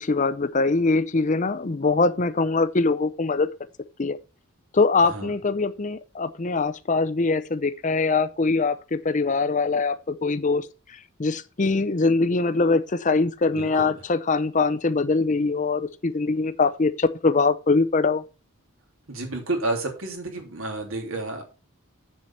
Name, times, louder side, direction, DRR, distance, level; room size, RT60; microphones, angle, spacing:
voice 1, 0.0-3.5 4.0-4.2 4.7-10.7 11.2-18.2, left 3 dB, 35° left, 0.6 m, -23 dB
voice 2, 5.0-5.3 13.5-13.9 19.1-21.4, right 2 dB, 75° right, 3.1 m, -30 dB
7.5 x 6.7 x 5.6 m
head